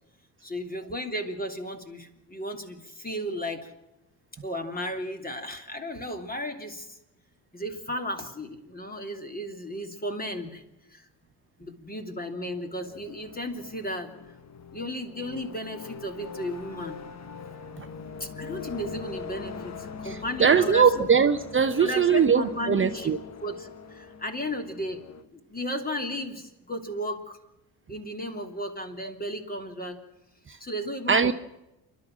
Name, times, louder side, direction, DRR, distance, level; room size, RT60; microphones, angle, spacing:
voice 1, 0.4-3.7 4.4-7.0 7.5-10.6 10.9-11.1 11.6-14.1 14.7-17.0 18.2-21.1 21.8-27.4 27.9-30.0 30.6-31.3, equal, 20° left, 4 dB, 3.1 m, -34 dB
sound 1, 12.4-25.2, left 5 dB, 40° left, 1.4 m, -42 dB
voice 2, 20.0-23.2 30.5-30.6 31.1-31.3, right 6 dB, 30° right, 8 dB, 0.9 m, -21 dB
28.5 x 12.0 x 7.5 m, 0.93 s
supercardioid pair, 75°, 43 cm